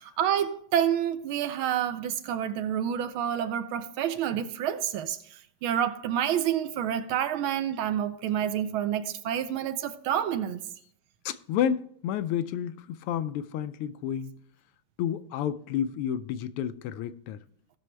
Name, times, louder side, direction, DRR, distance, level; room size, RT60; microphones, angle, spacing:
voice 1, 0.0-10.6, right 10 dB, 75° right, 1.4 m, -28 dB
voice 2, 11.2-14.3 15.0-17.4, left 9 dB, 90° left, 1.5 m, -30 dB
17.0 x 6.2 x 3.3 m
omnidirectional pair, 2.4 m